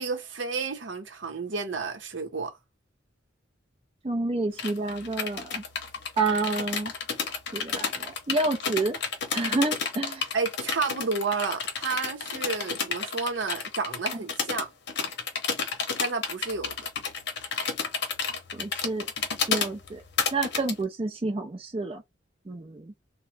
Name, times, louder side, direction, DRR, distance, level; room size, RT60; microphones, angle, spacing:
voice 1, 0.0-2.6 10.3-14.7 16.0-16.7, right 4 dB, 70° right, 0.8 m, -31 dB
voice 2, 4.0-5.6 6.2-6.9 7.5-9.0 9.3-10.3 14.1-14.2 18.5-19.1 19.5-20.0 20.3-22.0 22.5-22.9, right 3 dB, 30° right, 0.5 m, -29 dB
sound 1, 4.6-20.7, left 5 dB, 60° left, 0.8 m, -31 dB
3.0 x 2.2 x 3.3 m
head